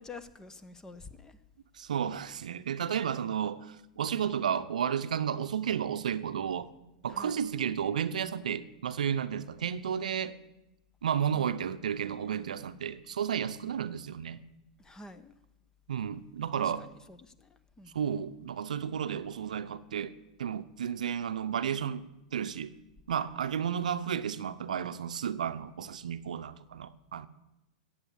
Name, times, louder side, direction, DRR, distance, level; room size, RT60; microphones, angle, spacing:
voice 1, 0.0-1.4 7.1-7.4 11.3-11.5 14.8-15.3 16.6-17.9, left 3 dB, 15° left, 1.0 m, -49 dB
voice 2, 1.7-6.7 7.0-10.4 11.0-14.4 15.9-16.9 17.9-20.1 20.4-22.0 22.3-22.7 23.1-27.3, right 8 dB, 75° right, 0.7 m, -32 dB
15.0 x 8.8 x 7.2 m
hypercardioid pair, 105°, 4 cm